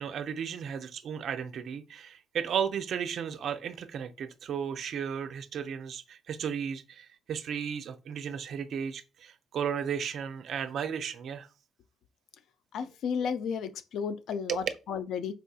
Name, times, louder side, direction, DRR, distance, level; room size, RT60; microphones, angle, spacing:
voice 1, 0.0-11.5 14.5-14.6, right 7 dB, 65° right, 0.4 m, -34 dB
voice 2, 12.7-15.3, left 6 dB, 75° left, 0.3 m, -33 dB
4.2 x 2.6 x 2.3 m
cardioid pair, 90°, 0 cm